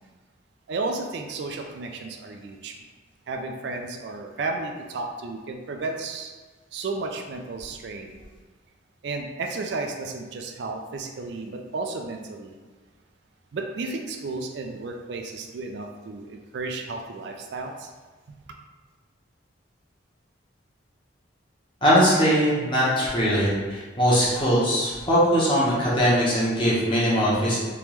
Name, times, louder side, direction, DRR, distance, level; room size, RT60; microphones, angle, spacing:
voice 1, 0.7-2.7 3.3-6.3 6.7-8.2 9.0-12.6 13.5-17.9, right 3 dB, 60° right, 3 dB, 0.3 m, -33 dB
voice 2, 21.8-27.6, equal, 25° left, -8 dB, 1.0 m, -21 dB
3.4 x 2.9 x 3.0 m, 1.3 s
head